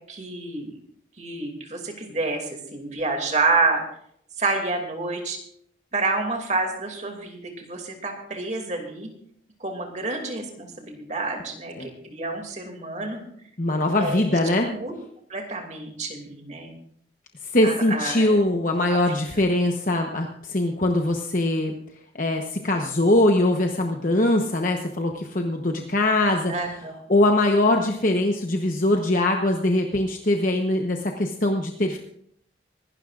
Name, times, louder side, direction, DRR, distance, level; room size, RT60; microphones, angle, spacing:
voice 1, 0.1-0.8 1.2-3.8 4.4-5.4 5.9-9.1 9.6-13.2 14.0-14.4 14.7-14.9 15.3-16.7 17.6-18.4 18.9-19.2 26.5-27.0, right 3 dB, 40° right, 2 dB, 2.6 m, -28 dB
voice 2, 13.6-14.7 17.5-21.7 22.1-26.5 27.1-32.0, left 1 dB, 45° left, 2 dB, 1.0 m, -22 dB
25.0 x 12.5 x 2.5 m, 0.68 s
head